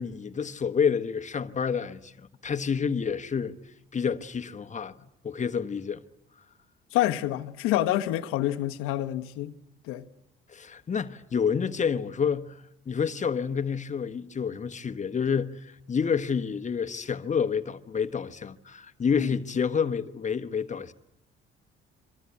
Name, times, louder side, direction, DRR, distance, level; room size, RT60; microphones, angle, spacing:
voice 1, 0.0-3.5 3.9-4.9 5.2-6.0 10.5-20.9, left 6 dB, 35° left, 1.3 m, -29 dB
voice 2, 6.9-9.5 9.8-10.1 19.1-19.3, left 14 dB, 90° left, 1.3 m, -27 dB
26.5 x 24.5 x 8.4 m
cardioid pair, 85°, 21 cm